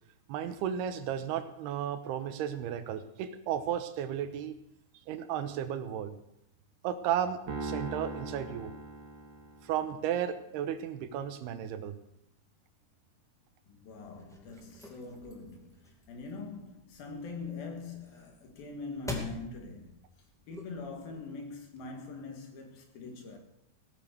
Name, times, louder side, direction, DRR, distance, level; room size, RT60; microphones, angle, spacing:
voice 1, 0.3-4.5 5.1-6.2 6.8-8.7 9.6-12.0, right 9 dB, 85° right, 3.0 m, -34 dB
Piano, 7.5-9.9, right 3 dB, 50° right, 2.9 m, -40 dB
voice 2, 13.7-23.4, left 4 dB, 70° left, 3.5 m, -43 dB
sound 1, 14.0-21.1, left 2 dB, 5° left, 0.6 m, -46 dB
17.0 x 9.0 x 6.6 m
omnidirectional pair, 4.6 m